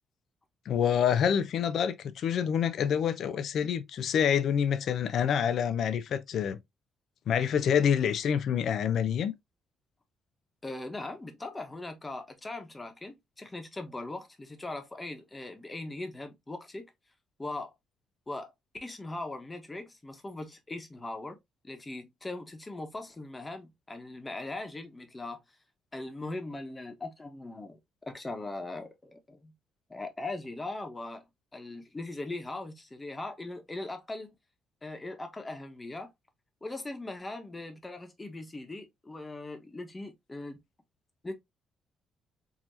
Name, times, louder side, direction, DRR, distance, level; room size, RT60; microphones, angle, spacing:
voice 1, 0.7-6.6 7.3-9.3, left 8 dB, 70° left, 0.4 m, -27 dB
voice 2, 10.6-16.9 17.4-17.7 18.3-18.5 18.8-21.4 21.6-25.4 25.9-27.8 28.1-29.5 29.9-31.2 31.5-34.3 34.8-36.1 36.6-40.6 41.2-41.3, left 2 dB, 20° left, 1.1 m, -40 dB
4.7 x 2.9 x 2.6 m
cardioid pair, 90°, 0 cm